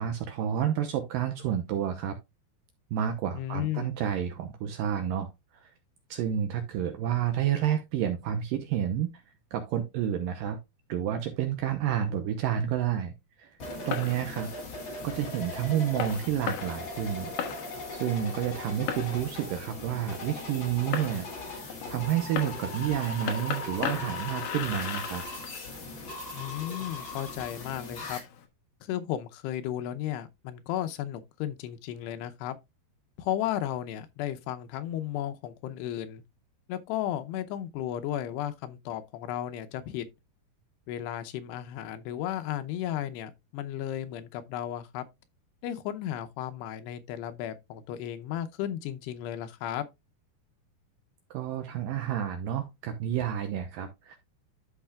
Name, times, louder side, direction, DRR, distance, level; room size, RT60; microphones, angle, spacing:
voice 1, 0.0-2.2 2.9-5.3 5.6-5.7 6.1-9.1 9.5-10.6 10.9-13.1 13.4-13.5 13.9-14.5 15.0-17.3 17.9-25.2 51.3-54.2, right 10 dB, 75° right, 2.1 m, -30 dB
voice 2, 3.3-4.0 26.3-28.2 28.8-32.6 33.2-36.2 36.7-40.0 40.9-45.1 45.6-49.9, left 11 dB, 85° left, 2.9 m, -34 dB
Fireworks, 13.6-28.5, left 8 dB, 70° left, 1.9 m, -39 dB
sound 1, 13.6-28.2, left 2 dB, 35° left, 2.6 m, -39 dB
12.0 x 5.7 x 2.3 m
omnidirectional pair, 4.8 m